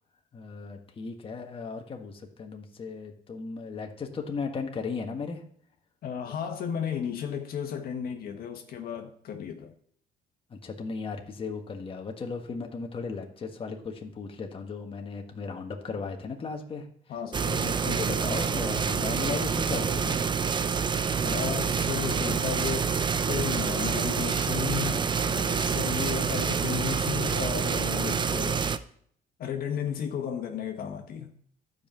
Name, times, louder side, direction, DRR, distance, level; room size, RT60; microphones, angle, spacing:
voice 1, 0.3-5.4 10.5-16.9 17.4-20.2, left 4 dB, 30° left, 1.5 m, -36 dB
voice 2, 6.0-9.7 17.1-17.4 21.2-28.7 29.4-31.3, left 8 dB, 60° left, 1.4 m, -34 dB
sound 1, 17.3-28.8, right 6 dB, 25° right, 0.6 m, -27 dB
11.5 x 5.5 x 7.6 m
cardioid pair, 110°, 17 cm